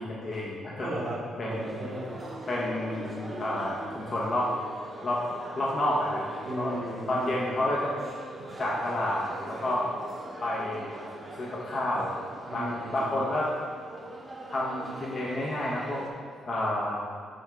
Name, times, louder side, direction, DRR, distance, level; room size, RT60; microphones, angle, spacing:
voice 1, 0.0-0.9 1.4-1.8 2.5-4.5 5.0-5.2 5.5-6.2 6.6-6.7 7.1-8.0 8.6-9.9 10.4-10.9 11.4-12.2 12.5-13.5 14.5-16.0 16.5-17.0, left 1 dB, 45° left, -5 dB, 1.1 m, -30 dB
voice 2, 0.8-2.1 6.4-7.5 12.5-13.1, right 1 dB, 70° right, -6 dB, 1.6 m, -36 dB
sound 1, 1.5-16.1, right 1 dB, 25° right, 1.1 m, -42 dB
8.8 x 3.7 x 3.6 m, 2.1 s
cardioid pair, 90°, 0 cm